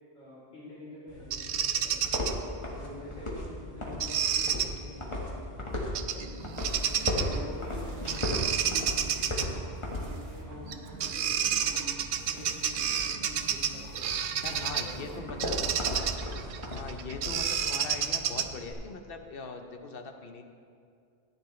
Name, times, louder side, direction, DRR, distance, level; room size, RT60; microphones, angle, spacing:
voice 1, 0.1-2.4 2.8-6.3 6.7-9.6 9.9-11.9 12.3-14.1 14.5-15.9 17.4-17.9, left 1 dB, 75° left, -9 dB, 3.4 m, -47 dB
sound 1, 1.1-18.7, left 1 dB, 25° left, 1.6 m, -37 dB
Bird vocalization bird call bird song, 1.3-2.3 4.0-4.7 5.9-6.3 6.6-7.4 8.1-9.5 10.7-10.8 11.0-14.9 15.4-18.7, right 8 dB, 85° right, 0.9 m, -30 dB
sound 2, 6.2-15.7, right 3 dB, 65° right, 1.3 m, -47 dB
voice 2, 14.4-15.6 16.7-20.4, left 4 dB, 60° left, 5 dB, 1.0 m, -41 dB
14.5 x 9.9 x 3.2 m, 2.3 s
omnidirectional pair, 1.1 m